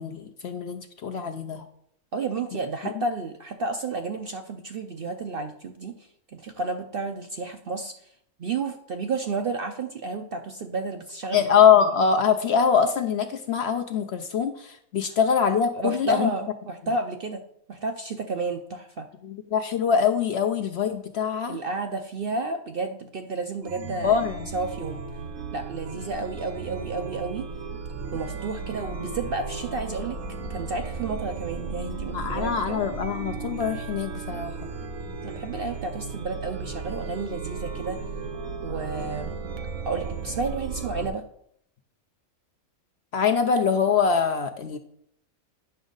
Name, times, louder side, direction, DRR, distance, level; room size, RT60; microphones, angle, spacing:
voice 1, 0.0-1.6 11.3-16.3 19.2-21.6 24.0-24.5 32.1-34.7 43.1-44.8, left 7 dB, 60° left, 6 dB, 0.7 m, -23 dB
voice 2, 2.1-5.9 6.3-7.9 8.4-11.5 15.7-17.4 17.7-19.1 21.5-24.2 24.5-25.0 25.5-27.5 28.1-30.2 30.5-32.8 35.2-38.0 38.6-39.3 39.8-41.2, right 3 dB, 55° right, 5 dB, 0.6 m, -31 dB
Chime, 23.6-41.1, right 4 dB, 70° right, 1.3 m, -35 dB
9.6 x 6.1 x 3.9 m, 0.69 s
omnidirectional pair, 1.5 m